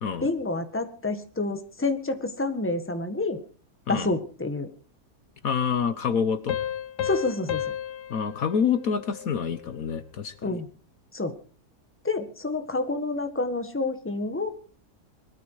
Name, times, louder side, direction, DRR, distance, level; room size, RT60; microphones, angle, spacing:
voice 1, 0.2-3.4 3.9-4.7 7.0-7.6 10.4-10.7 11.1-11.3 12.0-14.5, left 2 dB, 10° left, 8 dB, 1.6 m, -28 dB
voice 2, 5.4-6.6 8.1-10.6, left 6 dB, 60° left, 12 dB, 1.4 m, -27 dB
Piano, 6.5-9.8, left 10 dB, 90° left, 1.5 m, -33 dB
21.0 x 13.5 x 4.8 m, 0.42 s
omnidirectional pair, 1.7 m